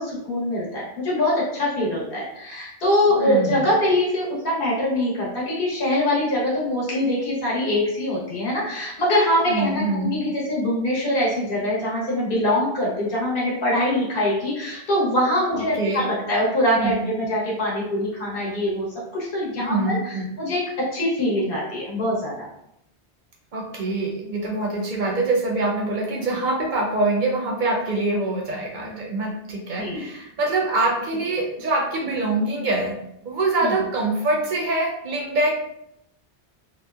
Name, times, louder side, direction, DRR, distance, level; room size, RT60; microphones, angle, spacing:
voice 1, 0.0-18.9 19.1-22.5 29.8-30.0 33.6-33.7, left 1 dB, 55° left, -6 dB, 1.1 m, -23 dB
voice 2, 3.2-3.6 9.5-10.1 15.6-16.1 16.7-17.0 19.6-20.2 23.5-32.9 33.2-35.5, right 2 dB, 55° right, -1 dB, 0.6 m, -24 dB
2.8 x 2.1 x 2.2 m, 0.78 s
omnidirectional pair, 1.1 m